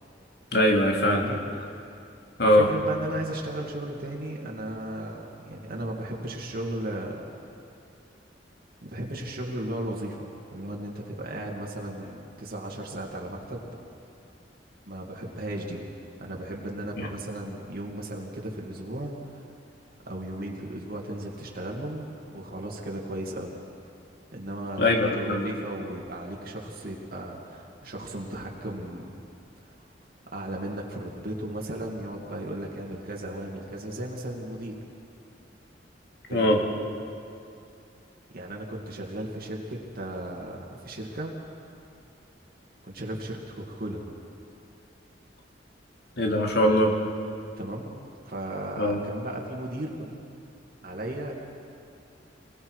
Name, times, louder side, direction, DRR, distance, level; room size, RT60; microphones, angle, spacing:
voice 1, 0.5-1.3 2.4-2.7 17.0-17.1 24.8-25.5 36.3-36.6 46.2-47.0 48.8-49.0, left 1 dB, 65° left, 0 dB, 2.6 m, -21 dB
voice 2, 1.0-1.4 2.4-7.4 8.8-13.7 14.9-15.8 16.2-19.4 20.1-23.5 24.3-29.1 30.3-34.8 36.3-36.6 38.3-41.4 42.8-44.0 47.6-47.9 48.2-50.1 50.8-51.3, right 1 dB, 55° right, -1 dB, 2.3 m, -35 dB
26.5 x 21.5 x 4.9 m, 2.6 s
head